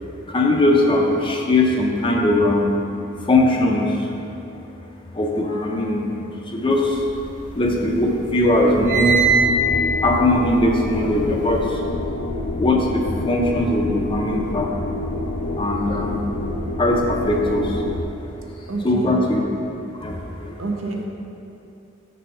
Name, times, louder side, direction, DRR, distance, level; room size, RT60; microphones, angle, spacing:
voice 1, 0.3-2.7 3.3-3.9 5.2-6.1 6.6-6.8 7.6-9.1 10.0-11.6 12.6-14.7 15.6-16.2 16.8-17.7 18.8-19.4 20.0-20.1, left 1 dB, 25° left, 0 dB, 0.6 m, -19 dB
sound 1, 6.9-7.9 8.2-11.6, right 3 dB, 35° right, 0.5 m, -23 dB
sound 2, 8.7-18.0, left 2 dB, 85° left, 0.5 m, -28 dB
voice 2, 18.7-19.2 20.6-21.1, right 3 dB, 70° right, 1 dB, 0.8 m, -27 dB
6.5 x 4.1 x 5.6 m, 2.8 s
head